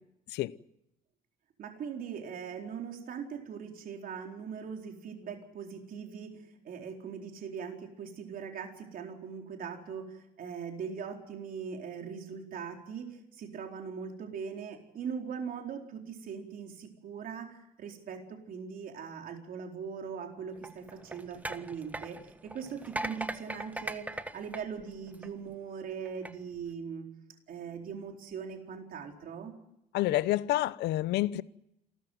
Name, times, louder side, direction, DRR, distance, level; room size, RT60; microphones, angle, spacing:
voice 1, 1.6-27.1 27.5-29.6, right 6 dB, 55° right, 4.2 m, -41 dB
sound 1, 20.6-25.5 26.1-26.3, right 2 dB, 10° right, 1.1 m, -40 dB
voice 2, 29.9-31.4, left 15 dB, 80° left, 0.8 m, -28 dB
27.5 x 14.0 x 9.3 m
cardioid pair, 110°, 17 cm